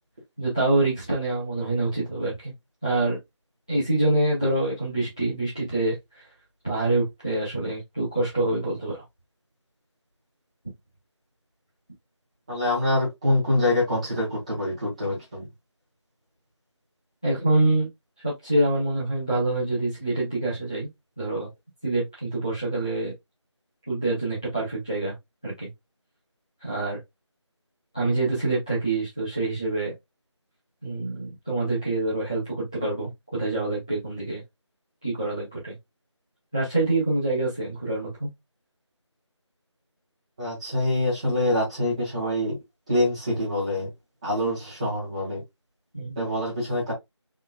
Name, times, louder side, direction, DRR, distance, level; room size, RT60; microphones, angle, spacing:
voice 1, 0.4-2.5 2.8-3.2 3.7-6.3 6.6-9.0 17.2-17.9 18.2-20.9 21.2-21.5 21.8-23.1 23.9-25.1 25.4-25.7 26.6-27.0 27.9-29.9 30.8-34.4 35.0-35.7 36.5-38.3 45.9-46.1, right 2 dB, 10° left, 0.6 m, -26 dB
voice 2, 12.5-15.5 40.4-42.6 42.9-43.9 44.2-45.4 46.1-46.9, left 1 dB, 15° right, 1.7 m, -25 dB
3.7 x 3.5 x 2.3 m
figure-of-eight pair, 170°, 16 cm